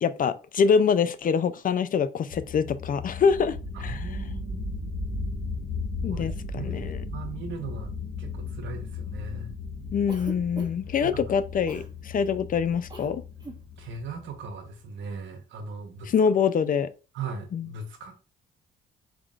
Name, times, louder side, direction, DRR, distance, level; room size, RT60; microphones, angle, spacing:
voice 1, 0.0-4.0 6.0-7.0 9.9-13.2 16.1-16.9 17.5-17.7, left 6 dB, 45° left, 0.5 m, -25 dB
sound 1, 2.3-14.7, left 3 dB, 70° left, 2.0 m, -36 dB
voice 2, 3.7-4.7 6.1-9.6 11.0-11.3 13.8-16.1 17.1-18.2, right 4 dB, 75° right, 1.1 m, -39 dB
Cough, 10.1-10.9 11.7-11.9 12.9-13.1 13.4-13.6, right 3 dB, 20° right, 1.4 m, -41 dB
4.6 x 3.7 x 2.5 m
cardioid pair, 90°, 20 cm